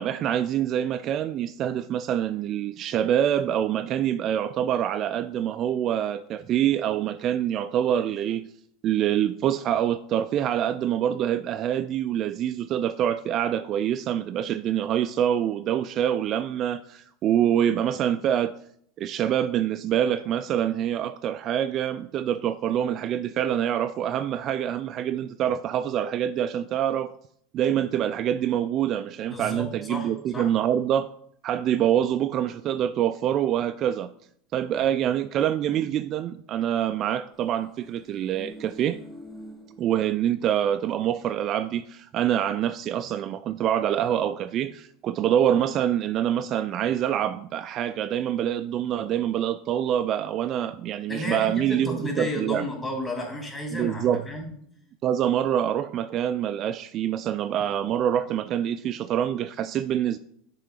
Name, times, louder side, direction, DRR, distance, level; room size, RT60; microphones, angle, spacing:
voice 1, 0.0-8.5 8.8-18.5 19.0-27.1 27.5-31.1 31.4-34.1 34.5-39.0 39.8-52.7 53.7-54.2 55.0-60.2, right 10 dB, 45° right, 0.3 m, -25 dB
voice 2, 29.3-30.5 34.8-34.9 51.1-54.5, left 1 dB, 20° left, 2.7 m, -32 dB
sound 1, 38.0-40.6 40.9-41.1, equal, 10° right, 1.2 m, -45 dB
6.7 x 3.8 x 6.4 m
supercardioid pair, 110°, 0 cm